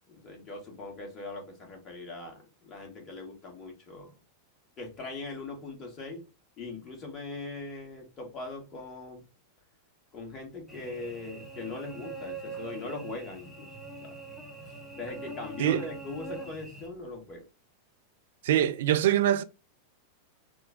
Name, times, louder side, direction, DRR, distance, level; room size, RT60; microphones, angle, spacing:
voice 1, 0.1-4.1 4.8-6.2 6.6-9.2 10.1-13.7 14.0-14.1 15.0-17.4, left 3 dB, 30° left, 1.5 m, -40 dB
Cricket / Buzz, 10.7-16.9, right 2 dB, ahead, 1.3 m, -43 dB
voice 2, 18.4-19.4, right 12 dB, 55° right, 0.4 m, -24 dB
3.7 x 2.2 x 3.7 m
figure-of-eight pair, 90°, 0 cm